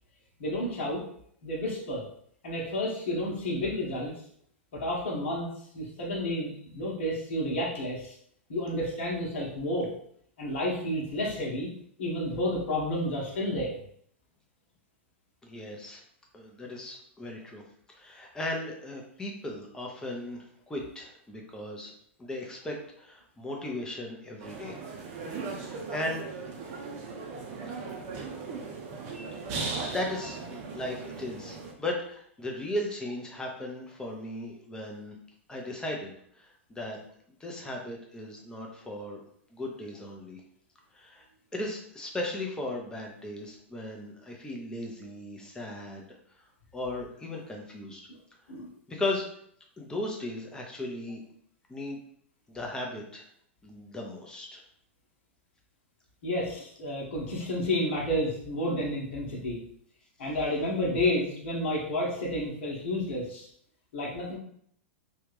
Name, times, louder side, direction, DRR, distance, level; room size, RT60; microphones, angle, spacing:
voice 1, 0.4-1.0 1.4-2.0 2.4-4.1 4.7-8.2 8.5-9.9 10.4-11.7 12.0-13.8 48.5-48.7 56.2-59.6 60.2-63.5 63.9-64.4, left 1 dB, 55° left, -3 dB, 1.1 m, -30 dB
voice 2, 15.4-16.0 16.3-17.6 17.9-21.9 22.2-24.7 25.4-26.3 27.7-27.8 29.8-35.1 35.5-36.1 36.4-37.0 37.4-39.2 39.5-40.4 40.9-41.2 41.5-46.1 46.7-48.0 48.9-49.3 49.8-51.2 51.7-52.0 52.5-53.2 53.6-54.6, left 1 dB, 10° left, 0 dB, 0.8 m, -36 dB
sound 1, 24.4-31.7, right 4 dB, 45° right, 0.7 m, -38 dB
3.2 x 2.5 x 3.2 m, 0.66 s
figure-of-eight pair, 100°, 7 cm